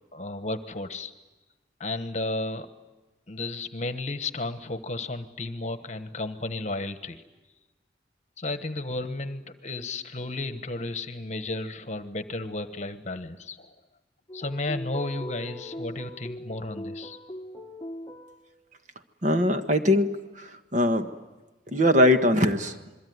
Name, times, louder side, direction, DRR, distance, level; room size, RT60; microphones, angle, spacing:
voice 1, 0.1-1.1 1.8-2.7 3.3-7.2 8.4-13.7 14.3-17.2, left 2 dB, 40° left, 10 dB, 1.3 m, -33 dB
sound 1, 14.3-18.5, left 1 dB, 15° left, 1.3 m, -40 dB
voice 2, 19.2-20.1 20.4-21.1 21.7-22.7, left 1 dB, 40° right, 7 dB, 1.4 m, -21 dB
27.5 x 22.0 x 9.5 m, 1.1 s
head